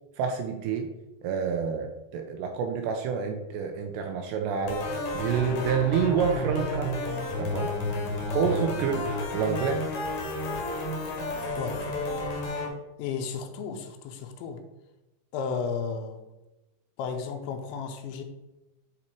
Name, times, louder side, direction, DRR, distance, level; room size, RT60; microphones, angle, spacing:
voice 1, 0.2-0.9 1.2-6.9 7.4-7.7 8.3-9.9, right 7 dB, 80° right, 5 dB, 2.6 m, -28 dB
sound 1, 4.7-12.7, left 2 dB, 60° left, 1.9 m, -31 dB
voice 2, 13.0-14.6 15.3-16.2 17.0-18.2, left 5 dB, 85° left, 5 dB, 3.0 m, -33 dB
9.7 x 4.2 x 4.5 m, 1.0 s
omnidirectional pair, 5.4 m